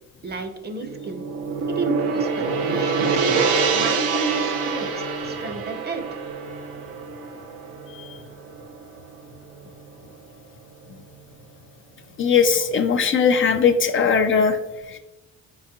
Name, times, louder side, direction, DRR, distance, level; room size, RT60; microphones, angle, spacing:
voice 1, 0.2-1.2 1.7-3.2 3.7-6.0, right 3 dB, 35° right, 7 dB, 0.6 m, -31 dB
Gong, 0.8-9.2, right 4 dB, 90° right, 0.6 m, -25 dB
voice 2, 12.2-14.6 14.9-15.0, left 6 dB, 45° left, 7 dB, 0.4 m, -19 dB
4.3 x 3.8 x 2.8 m, 1.0 s
cardioid pair, 90°, 30 cm